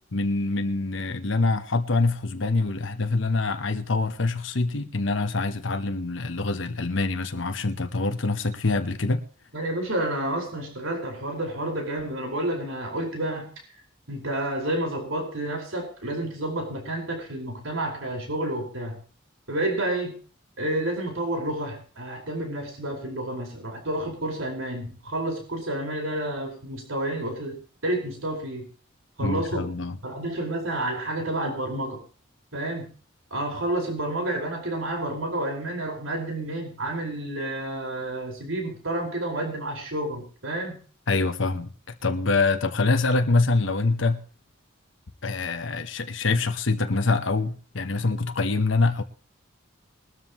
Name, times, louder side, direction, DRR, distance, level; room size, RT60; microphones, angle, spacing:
voice 1, 0.1-9.2 29.2-30.0 41.1-41.7 42.0-44.2 45.2-49.0, left 3 dB, 70° left, 1.0 m, -25 dB
voice 2, 9.5-13.5 14.1-19.0 19.5-20.1 20.6-27.6 27.8-28.7 29.2-29.7 30.0-32.0 32.5-32.9 33.3-40.8, right 1 dB, 85° right, 5.0 m, -30 dB
21.0 x 13.0 x 3.0 m
head